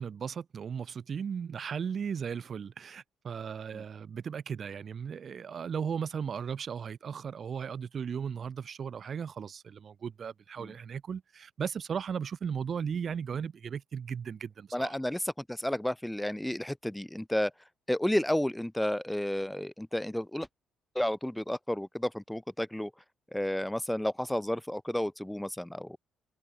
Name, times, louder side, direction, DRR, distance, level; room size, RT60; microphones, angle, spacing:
voice 1, 0.0-15.0, right 7 dB, 45° right, 7.0 m, -36 dB
voice 2, 14.7-17.5 17.9-20.5 20.9-22.9 23.3-26.0, left 1 dB, 5° left, 3.0 m, -31 dB
figure-of-eight pair, 45°, 0 cm